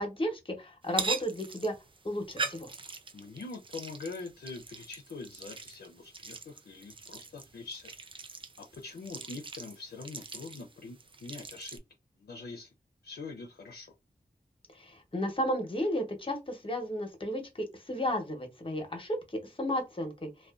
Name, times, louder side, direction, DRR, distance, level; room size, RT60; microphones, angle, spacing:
voice 1, 0.0-1.7 2.0-2.7 14.8-20.3, equal, 35° left, 0.8 m, -33 dB
sound 1, 0.8-11.8, right 4 dB, 35° right, 0.4 m, -41 dB
voice 2, 3.1-7.9 8.3-11.8 12.2-12.7 13.0-14.0, left 3 dB, 85° left, 0.4 m, -44 dB
2.4 x 2.1 x 2.3 m
wide cardioid pair, 50°, 16 cm